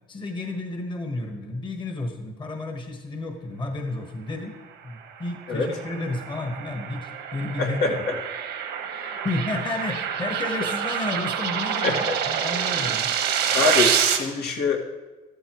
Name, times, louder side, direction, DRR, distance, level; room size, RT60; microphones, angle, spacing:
voice 1, 0.1-4.5 4.8-8.0 9.2-13.1, left 2 dB, 30° left, 3 dB, 1.4 m, -31 dB
sound 1, 5.3-14.2, right 8 dB, 85° right, 1.4 m, -27 dB
voice 2, 7.6-7.9 8.9-9.3 11.8-12.2 13.5-14.8, left 4 dB, 75° left, -1 dB, 1.9 m, -25 dB
13.5 x 12.5 x 3.1 m, 1.2 s
cardioid pair, 110°, 17 cm